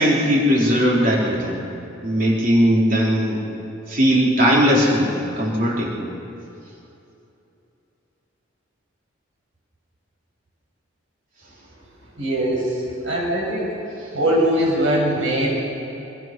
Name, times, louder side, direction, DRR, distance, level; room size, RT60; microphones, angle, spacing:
voice 1, 0.0-1.6 2.0-3.4 3.9-5.9, equal, 40° right, -4 dB, 4.0 m, -18 dB
voice 2, 12.2-13.7 14.1-15.6, right 1 dB, 75° right, -2 dB, 7.0 m, -21 dB
25.5 x 22.5 x 6.2 m, 2.8 s
head